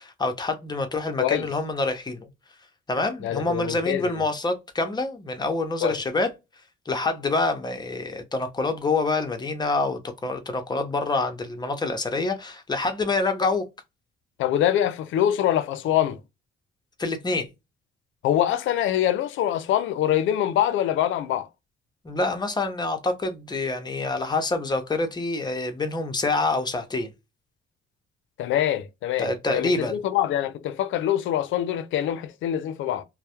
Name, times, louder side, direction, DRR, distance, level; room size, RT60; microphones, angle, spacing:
voice 1, 0.0-2.3 2.9-6.3 6.9-13.6 17.0-17.5 22.0-27.1 29.2-30.0, left 3 dB, 20° left, 0.6 m, -26 dB
voice 2, 3.2-4.2 5.8-6.0 14.4-16.2 18.2-21.5 28.4-33.0, left 11 dB, 75° left, 0.4 m, -24 dB
2.2 x 2.0 x 2.8 m
cardioid pair, 90°, 20 cm